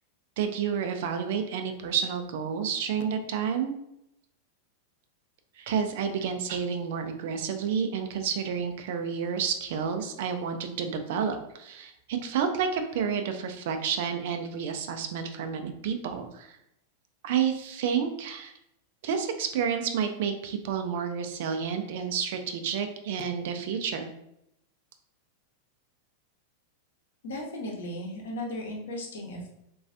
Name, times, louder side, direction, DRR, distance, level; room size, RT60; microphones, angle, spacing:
voice 1, 0.4-3.7 5.6-16.6 17.2-18.5 19.0-24.1, right 7 dB, 55° right, 6 dB, 0.4 m, -30 dB
voice 2, 27.2-29.5, left 1 dB, 60° left, 0 dB, 0.8 m, -36 dB
3.9 x 2.3 x 2.5 m, 0.81 s
figure-of-eight pair, 90°, 0 cm